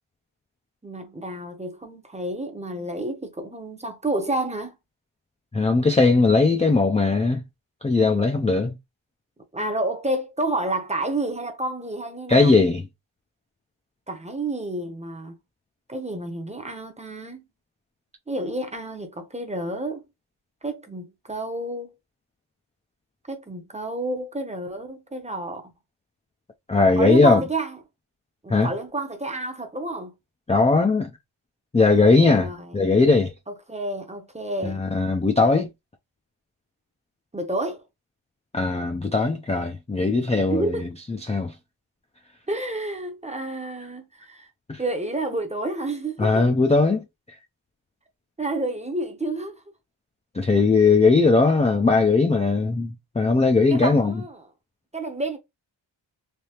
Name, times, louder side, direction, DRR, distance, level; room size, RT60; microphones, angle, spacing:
voice 1, 0.8-4.7 9.5-12.5 14.1-15.3 15.9-17.4 18.3-20.0 20.6-21.9 23.3-25.7 27.0-27.8 28.4-30.1 32.1-32.7 33.7-34.8 37.3-37.8 40.5-40.9 42.5-44.5 44.8-46.5 48.4-49.6 53.7-54.4 54.9-55.4, right 2 dB, 15° right, 0.7 m, -30 dB
voice 2, 5.5-7.4 7.8-8.7 12.3-12.9 26.7-27.4 28.5-28.7 30.5-31.1 31.7-33.3 34.6-35.7 38.5-41.5 44.7-44.8 46.2-47.4 50.3-54.2, left 3 dB, 15° left, 0.3 m, -19 dB
3.4 x 2.6 x 2.8 m
wide cardioid pair, 115°, 48 cm